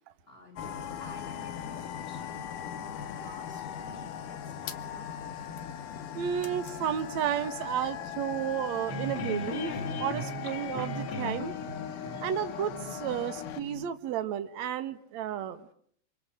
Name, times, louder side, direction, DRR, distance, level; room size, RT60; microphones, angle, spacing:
voice 1, 0.3-5.3 8.9-9.0, equal, 10° left, 2 dB, 6.3 m, -52 dB
sound 1, 0.6-13.6, left 8 dB, 60° left, 2.7 m, -39 dB
voice 2, 6.2-9.7 10.0-11.5 12.2-15.7, right 9 dB, 55° right, 10 dB, 2.1 m, -32 dB
sound 2, 8.9-13.8, left 2 dB, 40° left, 2.9 m, -38 dB
29.0 x 26.5 x 7.8 m, 0.64 s
omnidirectional pair, 5.0 m